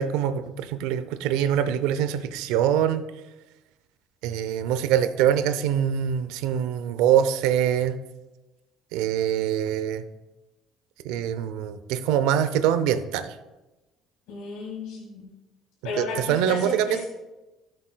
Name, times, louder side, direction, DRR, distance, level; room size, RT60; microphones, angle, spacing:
voice 1, 0.0-3.1 4.2-8.0 8.9-10.0 11.0-13.3 16.0-17.0, right 9 dB, 85° right, 12 dB, 0.5 m, -24 dB
voice 2, 14.3-15.3 15.8-17.0, left 3 dB, 80° left, -3 dB, 1.8 m, -33 dB
13.0 x 6.5 x 2.2 m, 1.1 s
cardioid pair, 100°, 0 cm